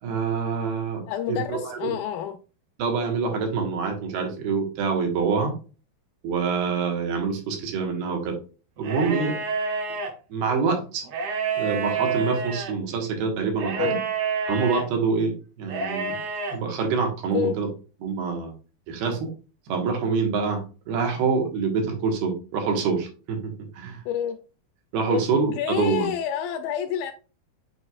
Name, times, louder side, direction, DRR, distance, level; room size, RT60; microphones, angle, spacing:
voice 1, 0.0-1.0 1.3-1.9 2.8-5.5 6.2-8.4 8.8-9.4 10.3-11.0 11.6-14.0 14.5-16.2 16.5-17.7 18.0-18.5 18.9-19.3 19.7-24.0 24.9-26.1, right 5 dB, 80° right, 3.3 m, -26 dB
voice 2, 1.1-2.4 13.8-14.0 17.3-17.6 24.1-24.4 25.1-25.2 25.6-27.1, left 10 dB, 80° left, 2.0 m, -28 dB
sound 1, 8.8-10.1 11.0-12.7 13.6-14.8 15.6-16.5, right 5 dB, 60° right, 2.6 m, -28 dB
8.6 x 4.7 x 2.3 m
omnidirectional pair, 4.4 m